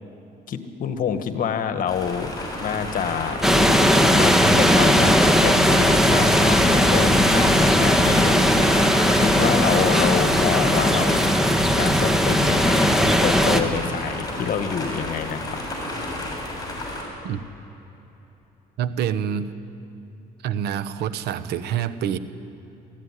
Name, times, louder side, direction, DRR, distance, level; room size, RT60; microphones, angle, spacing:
voice 1, 0.5-2.3 2.6-3.4 4.2-11.4 11.8-15.4, left 8 dB, 55° left, 8 dB, 1.7 m, -27 dB
sound 1, 1.9-17.0, left 1 dB, 20° left, 6.8 m, -31 dB
sound 2, 3.4-13.6, equal, 5° right, 1.7 m, -18 dB
voice 2, 18.8-19.5 20.4-22.2, right 9 dB, 75° right, 12 dB, 1.1 m, -26 dB
22.5 x 15.0 x 9.9 m, 3.0 s
cardioid pair, 110°, 17 cm